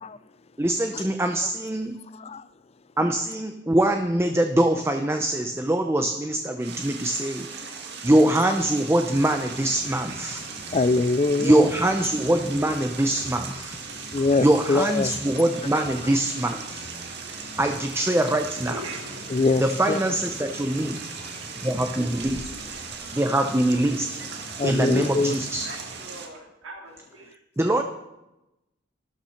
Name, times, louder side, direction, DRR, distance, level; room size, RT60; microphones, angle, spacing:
voice 1, 0.6-1.9 3.0-7.5 8.0-10.5 11.4-13.8 14.4-16.9 17.6-18.8 19.6-21.0 21.6-22.4 23.1-24.2 24.6-25.7 27.6-27.8, right 1 dB, 15° right, 0.7 m, -23 dB
sound 1, 6.6-26.3, right 5 dB, 55° right, 2.0 m, -38 dB
sound 2, 9.1-26.0, equal, 40° right, 2.5 m, -45 dB
voice 2, 10.7-11.6 14.1-15.1 19.3-19.6 19.9-20.0 24.6-25.3, left 3 dB, 30° left, 0.5 m, -22 dB
voice 3, 18.6-19.9 20.3-20.6 24.2-24.3 25.6-27.3, right 2 dB, 85° right, 3.4 m, -42 dB
13.0 x 11.5 x 5.8 m
head